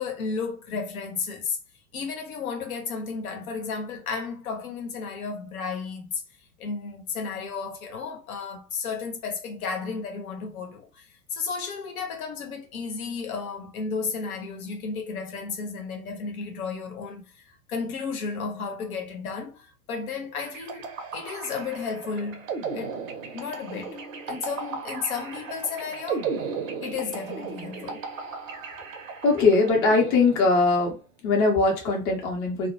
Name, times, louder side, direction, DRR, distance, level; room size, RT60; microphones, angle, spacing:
voice 1, 0.0-1.6 1.9-6.2 6.6-22.5 22.7-23.0 23.3-24.0 24.3-26.3 26.8-28.0, left 5 dB, 60° left, 0.8 m, -33 dB
sound 1, 20.4-30.8, right 5 dB, 55° right, 0.6 m, -36 dB
voice 2, 29.2-31.0 31.2-32.7, left 3 dB, 25° left, 0.7 m, -21 dB
2.1 x 2.1 x 2.8 m
figure-of-eight pair, 95°, 49 cm